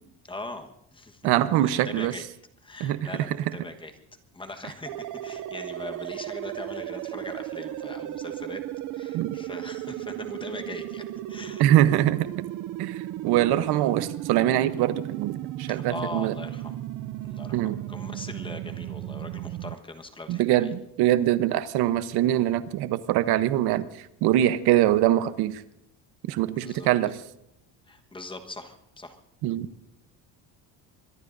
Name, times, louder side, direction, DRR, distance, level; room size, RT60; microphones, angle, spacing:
voice 1, 0.3-1.2 1.5-2.3 2.6-3.9 4.3-8.7 8.9-11.6 15.7-16.8 17.2-20.7 26.5-26.9 27.9-29.2, left 2 dB, 15° left, 5 dB, 1.3 m, -41 dB
voice 2, 1.2-2.1 2.8-3.3 9.1-9.3 11.6-12.3 12.8-16.3 17.5-17.8 20.3-25.6 26.3-27.2 29.4-29.7, right 13 dB, 75° right, 12 dB, 1.0 m, -23 dB
sound 1, 4.9-19.8, right 14 dB, 50° right, 0.5 m, -35 dB
24.0 x 22.5 x 2.6 m, 0.79 s
cardioid pair, 155°, 39 cm